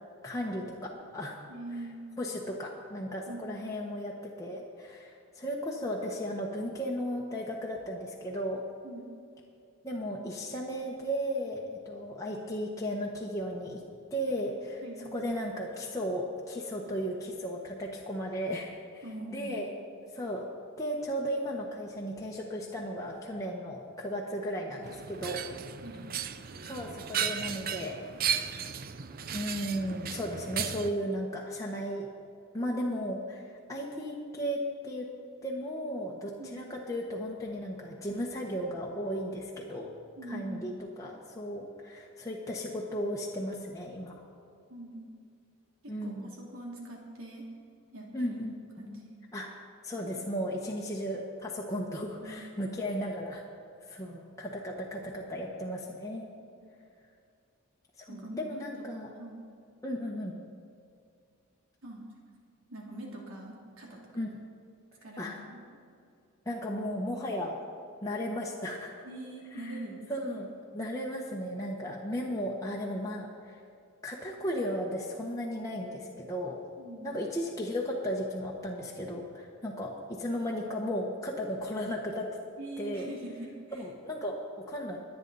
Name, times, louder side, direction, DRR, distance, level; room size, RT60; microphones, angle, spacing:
voice 1, 0.2-0.6 1.1-1.4 2.2-8.6 9.8-13.8 14.1-14.8 15.1-19.7 20.1-20.5 20.8-25.4 26.6-28.1 29.3-32.1 32.5-34.6 34.8-35.1 35.4-39.9 40.3-44.2 45.9-46.3 48.1-48.5 49.3-49.5 49.8-53.4 53.9-56.2 58.0-59.1 59.8-60.3 64.1-64.3 65.2-65.4 66.4-67.6 68.0-68.9 69.6-69.7 70.1-73.6 74.0-76.6 77.0-82.3 82.8-83.1 83.7-85.0, equal, 15° left, -3 dB, 1.1 m, -35 dB
voice 2, 1.5-2.0 3.3-3.6 8.8-9.1 14.8-15.0 19.0-19.6 25.8-26.0 36.4-36.6 40.2-40.8 44.7-45.1 45.8-47.5 47.9-48.4 48.8-49.2 50.0-50.1 52.2-52.8 56.6-56.7 58.1-58.4 58.8-58.9 59.2-59.4 61.8-62.0 62.7-64.0 65.0-65.6 69.0-70.4 76.8-77.2 82.6-83.8, right 1 dB, 70° right, -1 dB, 2.7 m, -43 dB
sound 1, 24.8-30.9, right 8 dB, 40° right, 0.5 m, -35 dB
22.0 x 9.1 x 4.1 m, 2.4 s
head